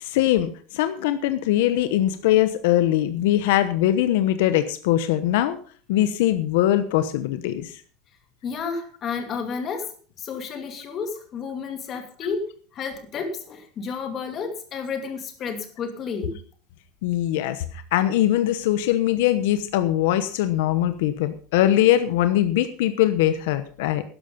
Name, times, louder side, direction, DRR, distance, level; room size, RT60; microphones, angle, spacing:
voice 1, 0.0-5.6 5.9-7.7 17.0-17.6 17.9-24.0, left 13 dB, 75° left, 11 dB, 1.0 m, -21 dB
voice 2, 8.4-16.4, left 5 dB, 25° left, 5 dB, 2.5 m, -31 dB
12.5 x 11.0 x 5.3 m, 0.43 s
cardioid pair, 175°, 0 cm